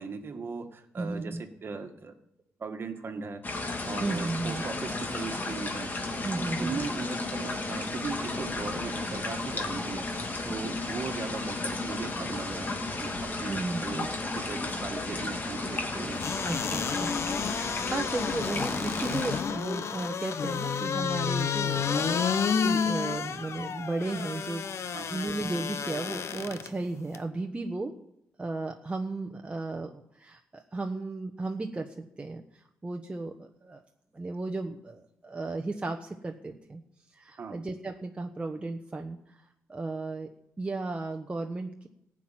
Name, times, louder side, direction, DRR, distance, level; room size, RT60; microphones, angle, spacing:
voice 1, 0.0-2.1 2.6-3.4 3.8-5.9 6.4-10.1 10.4-14.1 14.4-16.2 24.9-25.1 37.4-37.6, right 4 dB, 45° right, 6 dB, 1.7 m, -38 dB
voice 2, 1.0-1.4 4.0-4.6 6.2-6.8 13.5-14.1 16.5-17.1 17.6-22.3 22.6-27.9 28.4-33.8 34.1-36.8 37.1-40.3 40.6-41.9, right 2 dB, 20° right, 3 dB, 1.1 m, -35 dB
sound 1, 3.4-19.4, left 2 dB, 30° left, 2.2 m, -33 dB
sound 2, 16.2-26.7 27.1-27.2, left 6 dB, 55° left, 0.9 m, -31 dB
15.0 x 6.1 x 9.1 m, 0.80 s
cardioid pair, 105°, 6 cm